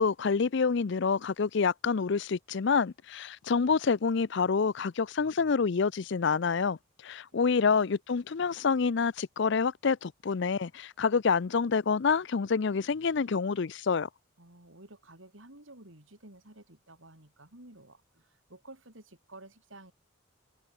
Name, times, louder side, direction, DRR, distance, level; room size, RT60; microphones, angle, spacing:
voice 1, 0.0-6.8 7.0-14.1, left 5 dB, 55° left, 0.5 m, -27 dB
voice 2, 14.4-19.9, right 2 dB, 70° right, 5.5 m, -52 dB
head